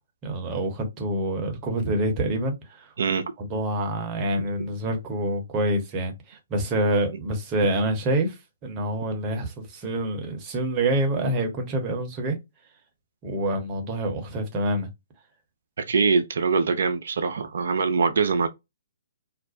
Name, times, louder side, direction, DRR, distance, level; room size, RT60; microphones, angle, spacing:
voice 1, 0.2-2.9 3.4-12.4 13.2-14.9, right 1 dB, 25° right, 0.9 m, -27 dB
voice 2, 3.0-3.3 15.8-18.5, right 5 dB, 60° right, 0.4 m, -23 dB
2.5 x 2.1 x 2.6 m
figure-of-eight pair, 125°, 0 cm